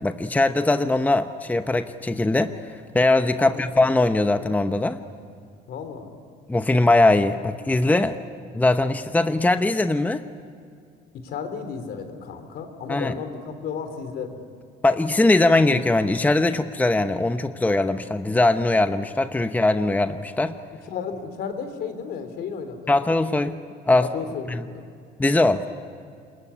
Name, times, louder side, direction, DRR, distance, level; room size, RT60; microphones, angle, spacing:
voice 1, 0.0-2.6 2.9-5.0 6.5-8.2 8.5-10.2 12.9-13.1 14.8-20.5 22.9-23.6 23.9-24.1 24.5-24.6 25.2-25.7, left 2 dB, 10° left, 9 dB, 0.9 m, -21 dB
voice 2, 3.3-3.6 5.7-6.1 11.2-14.4 20.8-23.0 24.0-24.8, left 6 dB, 70° left, 8 dB, 3.5 m, -33 dB
27.0 x 22.0 x 9.9 m, 2.3 s
cardioid pair, 110°, 17 cm